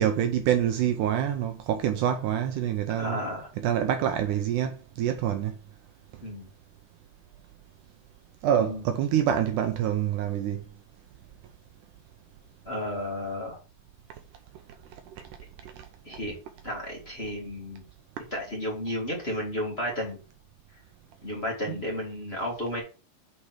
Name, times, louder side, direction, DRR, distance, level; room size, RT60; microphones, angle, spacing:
voice 1, 0.0-3.2 3.6-5.6 8.4-10.6, right 10 dB, 80° right, 2.1 m, -26 dB
voice 2, 2.9-3.5 6.2-6.5 8.6-8.8 12.6-13.6 16.0-16.3 16.6-17.8 18.3-20.2 21.2-22.8, left 1 dB, 25° left, 1.7 m, -32 dB
8.5 x 3.9 x 4.8 m
omnidirectional pair, 3.8 m